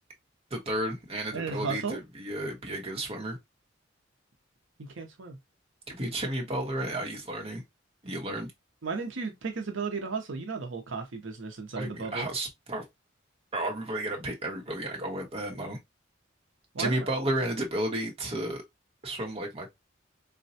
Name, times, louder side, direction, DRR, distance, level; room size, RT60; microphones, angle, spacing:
voice 1, 0.5-3.4 5.9-7.6 8.0-8.5 11.8-12.8 13.5-15.8 16.8-18.6 19.0-19.7, right 1 dB, 30° right, 0.9 m, -32 dB
voice 2, 1.3-2.0 4.8-5.4 8.8-12.3 16.7-17.1, right 4 dB, 75° right, 0.7 m, -34 dB
4.1 x 2.2 x 2.6 m
head